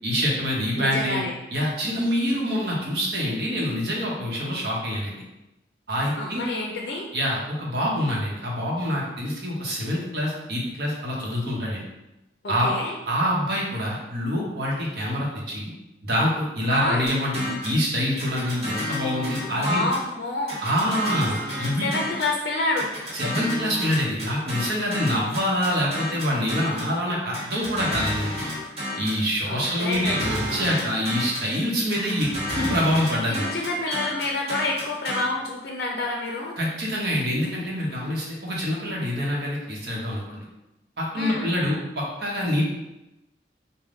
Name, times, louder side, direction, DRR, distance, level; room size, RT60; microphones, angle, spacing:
voice 1, 0.0-1.2 1.5-5.2 5.9-6.5 7.1-11.8 12.5-12.7 13.1-15.7 16.0-19.9 20.6-21.9 23.1-28.4 29.0-32.3 32.5-33.5 36.6-40.4 41.0-42.6, equal, 60° right, -3 dB, 0.9 m, -26 dB
voice 2, 0.8-1.3 6.2-7.1 12.4-13.0 16.7-17.1 19.3-20.6 21.8-22.9 29.5-30.2 33.3-36.6 41.2-41.5, left 2 dB, 65° left, -1 dB, 0.4 m, -28 dB
sound 1, 17.1-17.8 18.2-20.1 20.5-22.4 22.8-26.9 27.3-29.2 29.6-31.5 31.9-35.2, left 1 dB, 35° right, 1.4 m, -31 dB
3.5 x 2.1 x 3.7 m, 0.96 s
head